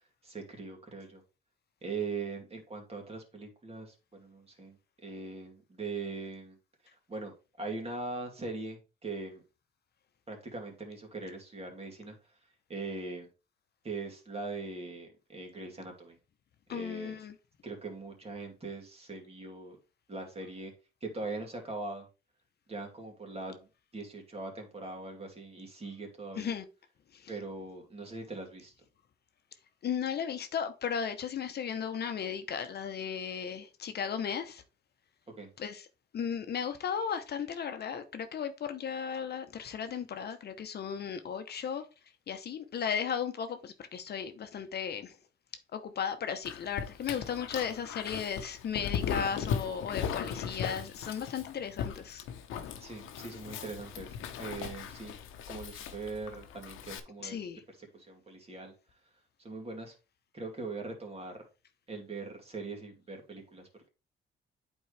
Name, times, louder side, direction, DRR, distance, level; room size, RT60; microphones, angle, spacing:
voice 1, 0.2-1.2 1.8-4.8 5.0-6.6 7.1-9.4 10.3-12.1 12.7-13.3 13.8-16.2 16.7-17.1 17.6-19.8 20.1-20.7 21.0-22.1 22.7-23.7 23.9-26.5 27.3-28.7 35.4-35.5 52.8-55.2 55.5-57.4 57.7-58.7 59.4-60.0 60.3-61.4 61.9-63.9, right 3 dB, 30° right, 2.4 m, -41 dB
voice 2, 16.7-17.3 26.4-26.6 27.2-27.3 29.8-34.6 35.6-35.9 36.1-41.8 42.3-45.1 45.7-52.2 57.2-57.6, left 7 dB, 55° left, 0.9 m, -35 dB
Dog, 46.4-57.0, left 8 dB, 85° left, 0.9 m, -38 dB
8.5 x 4.6 x 3.3 m
cardioid pair, 90°, 20 cm